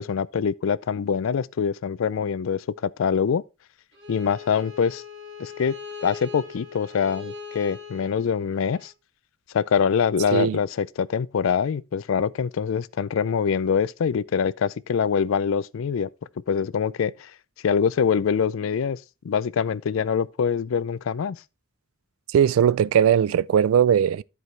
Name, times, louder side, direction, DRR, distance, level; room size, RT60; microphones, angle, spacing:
voice 1, 0.0-3.4 4.1-5.0 5.4-5.7 6.0-8.9 9.5-16.1 16.5-17.3 17.6-19.0 19.2-21.4, left 6 dB, 75° left, 0.4 m, -24 dB
Bowed string instrument, 3.9-8.9, left 5 dB, 55° right, 2.5 m, -41 dB
voice 2, 22.3-24.2, right 8 dB, 85° right, 0.3 m, -19 dB
13.5 x 4.7 x 3.2 m
head